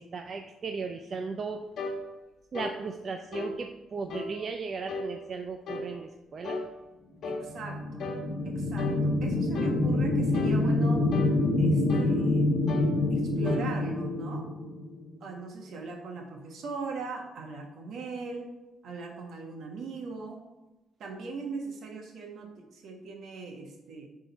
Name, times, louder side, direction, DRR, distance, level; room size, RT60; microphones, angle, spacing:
voice 1, 0.0-1.7 2.5-6.6, right 4 dB, 45° right, 5 dB, 0.5 m, -36 dB
sound 1, 1.8-2.0 2.5-2.8 3.3-3.6 4.1-4.3 4.9-5.1 5.7-5.9 6.4-6.7 7.2-7.5 8.0-8.2 8.8-9.0 9.5-9.8 10.3-10.6 11.1-11.4 11.9-12.2 12.7-12.9 13.5-13.7, left 2 dB, 65° left, 1.2 m, -35 dB
voice 2, 7.2-8.1 8.4-11.0 11.6-12.7 13.1-14.5 15.2-18.5 18.8-20.4 21.0-24.1, right 4 dB, 70° right, 2 dB, 1.4 m, -40 dB
sound 2, 7.5-15.2, left 2 dB, 20° left, 1.1 m, -26 dB
10.0 x 3.8 x 4.1 m, 1.1 s
cardioid pair, 90°, 0 cm